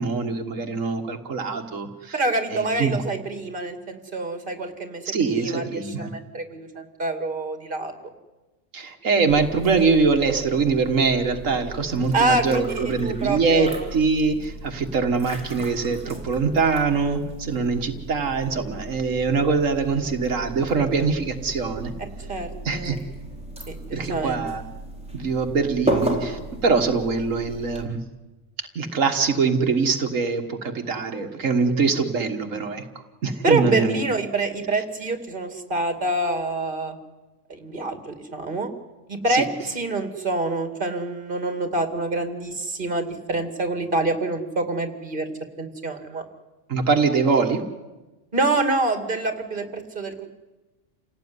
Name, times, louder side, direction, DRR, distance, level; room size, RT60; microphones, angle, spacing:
voice 1, 0.0-2.2 2.5-3.0 5.1-6.1 8.7-21.9 22.6-23.0 23.9-24.6 25.1-28.0 28.8-32.8 33.2-34.0 39.3-39.5 46.7-47.6, right 4 dB, 85° right, 4 dB, 1.9 m, -23 dB
voice 2, 2.1-7.9 12.1-12.7 13.0-13.9 22.3-23.0 23.7-24.4 33.4-37.0 37.5-38.7 39.1-45.3 45.6-46.2 48.3-50.3, right 2 dB, 40° right, 7 dB, 2.6 m, -26 dB
sound 1, 9.3-27.9, right 1 dB, 5° right, 4.4 m, -35 dB
28.5 x 17.5 x 9.6 m, 1.1 s
omnidirectional pair, 1.3 m